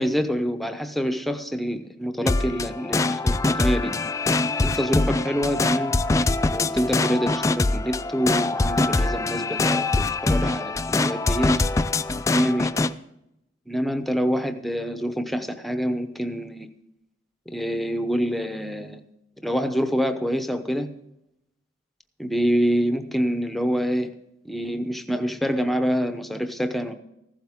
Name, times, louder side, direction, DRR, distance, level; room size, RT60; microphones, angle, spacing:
voice 1, 0.0-3.9 4.6-6.0 6.5-11.5 12.3-12.7 13.7-16.7 17.5-19.0 19.4-20.9 22.2-24.1 24.4-26.9, equal, ahead, 8 dB, 0.8 m, -26 dB
sound 1, 2.3-12.9, left 2 dB, 15° left, 0.3 m, -23 dB
15.5 x 12.0 x 3.6 m, 0.83 s
head